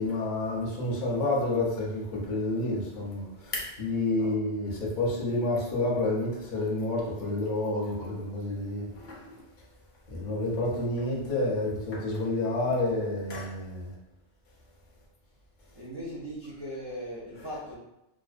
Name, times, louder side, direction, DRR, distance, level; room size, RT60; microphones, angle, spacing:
voice 1, 0.0-9.4 10.1-13.9, left 2 dB, 50° left, -4 dB, 0.7 m, -29 dB
voice 2, 15.7-17.8, equal, 40° right, -8 dB, 0.4 m, -39 dB
2.4 x 2.1 x 2.4 m, 0.90 s
omnidirectional pair, 1.2 m